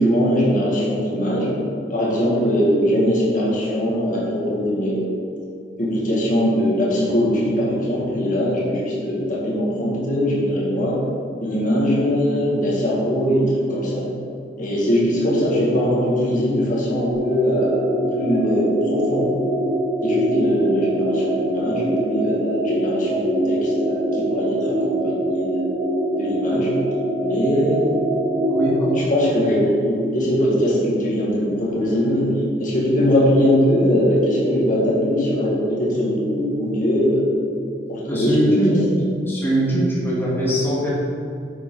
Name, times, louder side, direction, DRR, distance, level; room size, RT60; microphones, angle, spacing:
voice 1, 0.0-1.6 1.9-5.1 5.8-11.0 11.4-14.1 14.6-19.3 20.0-25.6 26.1-26.8 27.2-27.9 28.9-32.3 32.6-37.3 37.9-38.8, equal, 50° left, -5 dB, 2.1 m, -21 dB
sound 1, 17.1-29.0, right 1 dB, 70° right, 1.6 m, -23 dB
voice 2, 28.5-29.0 38.1-38.8 39.3-40.9, equal, 15° left, -7 dB, 1.8 m, -21 dB
9.0 x 7.1 x 4.0 m, 2.5 s
head